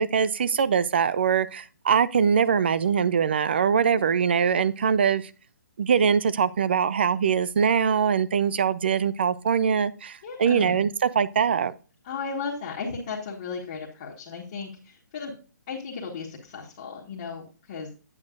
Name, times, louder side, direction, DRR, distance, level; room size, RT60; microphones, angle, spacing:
voice 1, 0.0-5.3 5.8-11.7, right 7 dB, 35° right, 17 dB, 0.4 m, -22 dB
voice 2, 10.2-10.8 12.0-15.3 15.7-17.9, left 5 dB, 25° left, -3 dB, 1.4 m, -35 dB
8.6 x 7.8 x 2.5 m, 0.36 s
hypercardioid pair, 175°, 10 cm